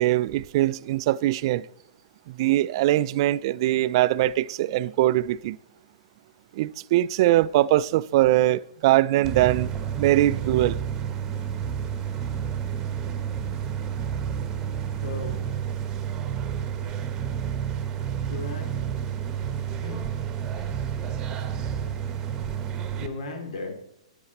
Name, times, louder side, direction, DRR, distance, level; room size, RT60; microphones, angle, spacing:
voice 1, 0.0-1.6 2.3-5.6 6.6-9.7 10.0-10.8, right 15 dB, 45° right, 0.4 m, -22 dB
sound 1, 9.2-23.1, right 8 dB, 20° right, 1.0 m, -30 dB
voice 2, 15.0-15.4 18.2-18.8 19.4-20.1 22.9-23.7, left 3 dB, 70° left, 3.1 m, -37 dB
9.7 x 8.9 x 4.1 m
hypercardioid pair, 140°, 4 cm